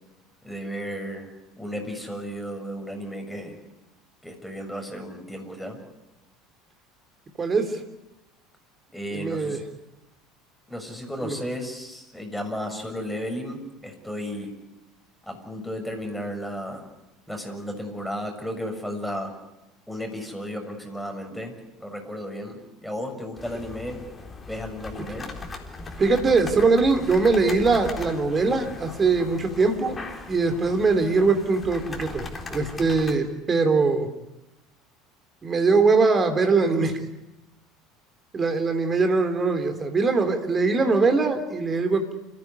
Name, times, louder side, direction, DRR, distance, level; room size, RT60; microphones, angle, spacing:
voice 1, 0.4-1.3 1.6-3.5 4.2-5.8 8.9-9.6 10.7-14.5 15.3-16.9 17.3-19.3 19.9-21.5 21.8-24.0 24.5-25.3, equal, ahead, 3 dB, 6.8 m, -34 dB
voice 2, 7.4-7.8 9.1-9.6 11.2-11.4 25.1-25.2 26.0-29.9 30.3-32.2 32.5-34.1 35.4-37.0 38.3-42.1, right 4 dB, 25° right, 7 dB, 3.7 m, -22 dB
sound 1, 23.4-33.2, left 2 dB, 20° left, 3.9 m, -38 dB
29.0 x 15.0 x 9.8 m, 0.96 s
figure-of-eight pair, 70°, 0 cm